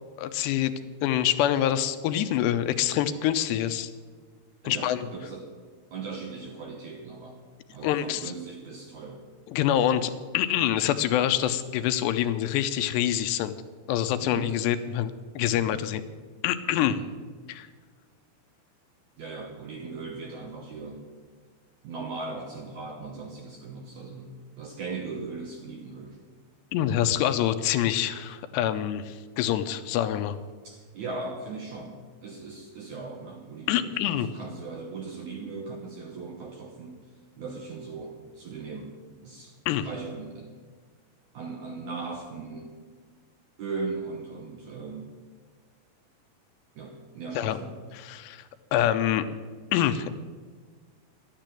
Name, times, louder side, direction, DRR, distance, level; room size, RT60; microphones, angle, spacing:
voice 1, 0.2-0.7 1.0-3.9 4.6-5.1 7.8-8.3 9.5-13.6 13.9-16.0 16.4-17.0 17.5-17.7 26.7-30.4 33.7-34.3 39.7-39.9 47.4-47.6 48.0-48.4 48.7-49.3 49.7-50.2, left 11 dB, 80° left, 10 dB, 2.8 m, -26 dB
voice 2, 4.6-5.5 5.9-7.4 7.7-9.2 14.2-14.5 15.5-15.8 16.8-17.1 19.2-21.0 21.8-26.2 30.6-37.1 37.4-38.9 39.2-39.6 39.8-40.5 41.3-42.7 43.6-45.1 46.8-47.8, right 4 dB, 65° right, 1 dB, 1.9 m, -38 dB
12.0 x 9.9 x 9.1 m, 1.5 s
omnidirectional pair, 4.9 m